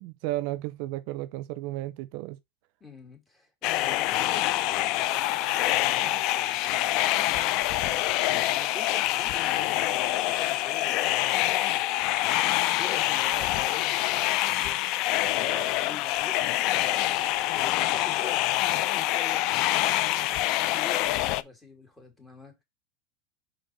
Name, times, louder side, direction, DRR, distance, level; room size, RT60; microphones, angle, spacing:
voice 1, 0.0-2.4, right 16 dB, 60° right, 0.5 m, -33 dB
voice 2, 2.8-11.6 12.7-22.6, left 1 dB, 15° left, 2.6 m, -46 dB
sound 1, 3.6-21.4, left 15 dB, 55° left, 0.4 m, -26 dB
5.3 x 4.4 x 4.4 m
supercardioid pair, 120°, 0 cm